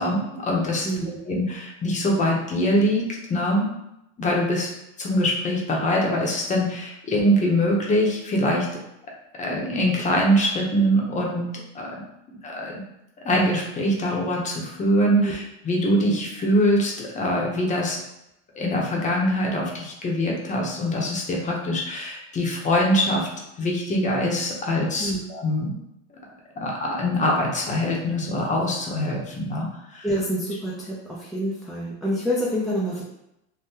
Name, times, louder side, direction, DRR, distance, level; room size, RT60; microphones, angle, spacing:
voice 1, 0.0-0.9 1.2-3.0 3.3-3.7 4.2-4.7 5.0-8.7 9.4-11.4 11.7-11.9 12.4-12.8 13.2-18.0 18.5-23.3 23.6-25.7 26.6-30.1, equal, 20° left, -1 dB, 0.7 m, -23 dB
voice 2, 0.8-1.2 15.2-15.3 25.0-25.2 30.0-33.0, equal, ahead, -8 dB, 0.3 m, -27 dB
3.6 x 2.1 x 2.7 m, 0.84 s
supercardioid pair, 140°, 33 cm